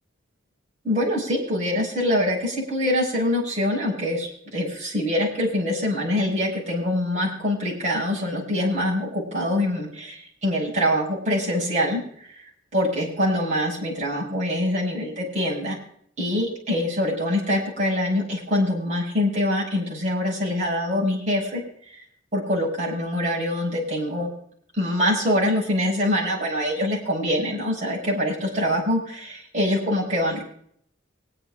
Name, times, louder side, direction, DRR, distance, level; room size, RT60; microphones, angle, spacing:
voice 1, 0.8-12.0 12.4-15.8 16.2-21.6 21.9-22.0 22.3-24.3 24.8-30.4, left 1 dB, 40° right, -4 dB, 6.1 m, -24 dB
26.0 x 9.6 x 2.5 m, 0.65 s
head